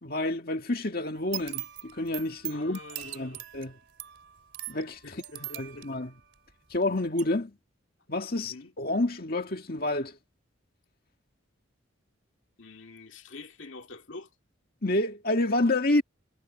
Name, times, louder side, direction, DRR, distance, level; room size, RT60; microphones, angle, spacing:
voice 1, 0.0-3.8 4.7-6.1 6.7-7.5 8.1-10.2 14.8-16.0, left 2 dB, 45° left, 2.1 m, -29 dB
sound 1, 1.2-6.8 7.2-7.3, right 16 dB, 65° right, 2.8 m, -41 dB
voice 2, 2.5-3.4 5.0-6.1 8.3-8.7 12.6-14.3, left 3 dB, 65° left, 2.2 m, -46 dB
head